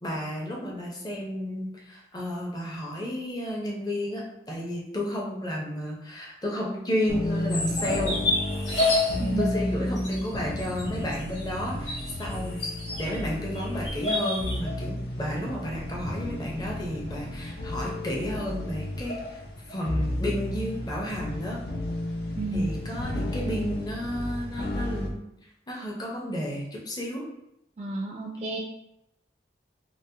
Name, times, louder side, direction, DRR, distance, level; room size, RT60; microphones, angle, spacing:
voice 1, 0.0-8.2 9.4-12.6 13.0-19.4 19.7-21.6 22.5-25.2 25.7-27.2, left 1 dB, 20° left, -3 dB, 0.6 m, -32 dB
sound 1, 7.1-25.1, left 1 dB, 70° left, 0.5 m, -31 dB
sound 2, 7.5-9.2 10.0-13.2 13.5-14.6, left 1 dB, 90° left, 1.1 m, -32 dB
voice 2, 9.2-9.5 22.4-22.8 27.8-28.6, right 2 dB, 35° right, -2 dB, 0.3 m, -31 dB
3.9 x 2.1 x 2.7 m, 0.83 s
head